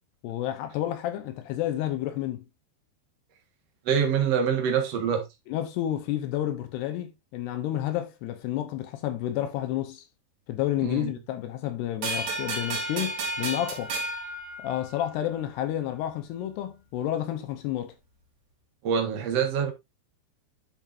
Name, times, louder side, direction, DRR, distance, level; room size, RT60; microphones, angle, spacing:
voice 1, 0.2-2.4 5.5-10.0 10.5-13.9 14.6-17.9, left 12 dB, 80° left, 2.6 m, -30 dB
voice 2, 3.8-5.3 10.8-11.1 18.8-19.7, right 7 dB, 75° right, 1.4 m, -25 dB
sound 1, 12.0-15.3, right 2 dB, 50° right, 3.8 m, -32 dB
12.0 x 5.4 x 2.6 m
omnidirectional pair, 5.4 m